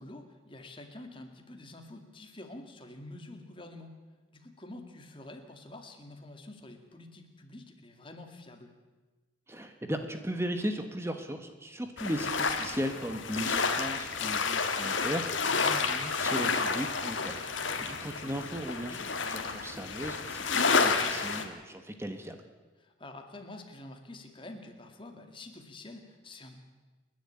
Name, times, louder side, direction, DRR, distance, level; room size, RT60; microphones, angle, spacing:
voice 1, 0.0-3.9 4.3-8.7 15.4-15.7 17.6-17.9 22.8-26.6, left 2 dB, 25° left, 5 dB, 2.2 m, -47 dB
voice 2, 9.5-22.5, equal, 15° right, 7 dB, 1.2 m, -37 dB
sound 1, 12.0-21.4, left 4 dB, 70° left, 1.8 m, -30 dB
30.0 x 10.5 x 8.7 m, 1.2 s
head